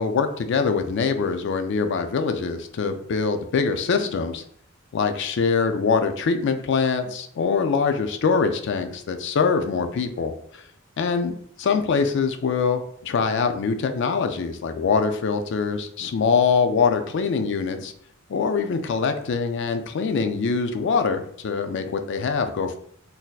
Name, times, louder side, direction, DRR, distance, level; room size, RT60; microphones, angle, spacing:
voice 1, 0.0-4.4 4.9-10.6 11.0-11.3 11.6-17.9 18.3-22.8, left 5 dB, 55° left, 7 dB, 0.3 m, -23 dB
4.0 x 2.7 x 2.3 m, 0.65 s
head